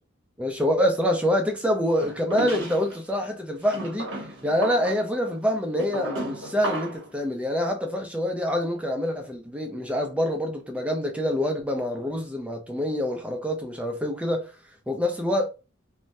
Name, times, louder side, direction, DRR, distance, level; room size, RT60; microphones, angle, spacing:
voice 1, 0.4-4.1 4.4-14.5 14.9-15.5, equal, 5° right, 0.5 m, -26 dB
sound 1, 2.0-3.0 3.6-7.1, right 1 dB, 70° right, 1.2 m, -34 dB
3.2 x 2.1 x 2.6 m
head